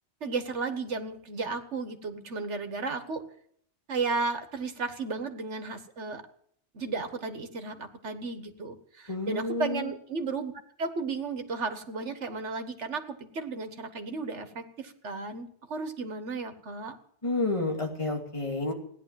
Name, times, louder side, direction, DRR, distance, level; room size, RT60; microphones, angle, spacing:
voice 1, 0.2-3.2 3.9-6.2 6.7-10.5 10.8-17.0, right 4 dB, 85° right, 8 dB, 1.8 m, -34 dB
voice 2, 9.1-9.9 17.2-18.7, left 2 dB, 25° left, 2 dB, 2.7 m, -30 dB
16.5 x 10.5 x 7.6 m, 0.63 s
omnidirectional pair, 1.2 m